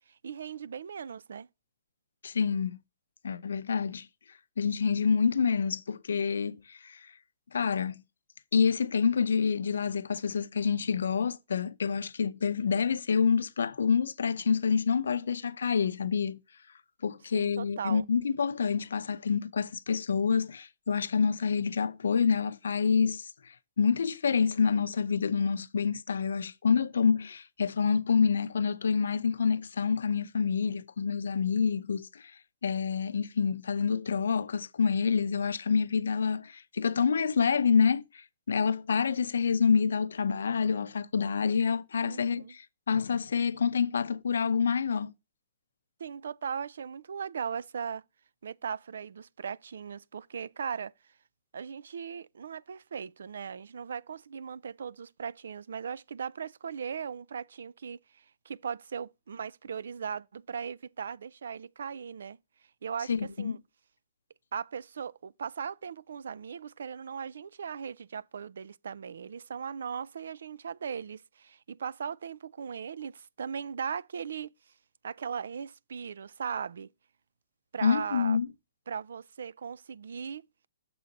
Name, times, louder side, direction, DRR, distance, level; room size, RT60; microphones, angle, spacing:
voice 1, 0.2-1.5 17.3-18.0 42.1-42.5 46.0-48.0 48.4-50.9 51.5-62.4 62.8-63.6 64.5-74.5 75.0-76.9 77.7-78.4 78.9-80.5, right 7 dB, 75° right, 0.4 m, -38 dB
voice 2, 2.2-2.8 3.2-4.1 4.6-7.0 7.5-7.9 8.5-16.4 17.0-23.3 23.8-32.3 32.6-45.1 63.1-63.6 77.8-78.5, left 6 dB, 85° left, 0.6 m, -27 dB
6.9 x 4.0 x 5.1 m
hypercardioid pair, 160°, 0 cm